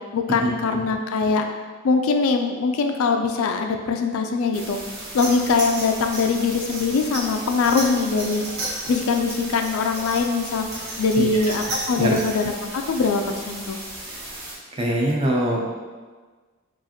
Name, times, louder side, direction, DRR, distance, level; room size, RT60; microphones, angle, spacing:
voice 1, 0.1-1.5 1.8-4.8 5.1-8.4 8.9-10.7 11.0-13.8, left 4 dB, 75° left, 5 dB, 0.3 m, -22 dB
sound 1, 4.5-14.5, right 1 dB, 65° right, 1.2 m, -37 dB
sound 2, 5.2-12.4, right 2 dB, 50° right, 0.9 m, -33 dB
voice 2, 14.0-14.4 14.7-15.6, right 1 dB, 25° right, -2 dB, 0.5 m, -23 dB
4.7 x 2.5 x 2.9 m, 1.4 s
head